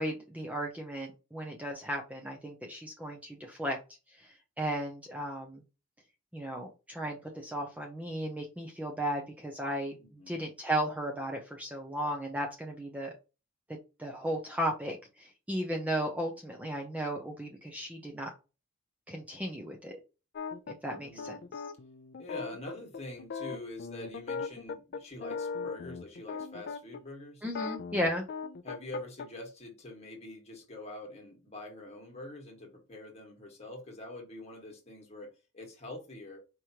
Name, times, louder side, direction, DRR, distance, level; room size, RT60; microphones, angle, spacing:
voice 1, 0.0-3.8 4.2-4.3 4.6-5.6 6.3-9.9 10.3-13.1 14.0-18.3 19.1-20.0 20.8-21.4 27.4-28.2, right 1 dB, 5° right, 0.6 m, -35 dB
voice 2, 10.0-10.4 21.0-21.5 22.1-27.4 28.6-36.4, left 1 dB, 30° left, 1.5 m, -45 dB
sound 1, 20.4-27.0 27.4-29.3, left 5 dB, 50° left, 0.4 m, -39 dB
4.9 x 3.1 x 2.8 m
head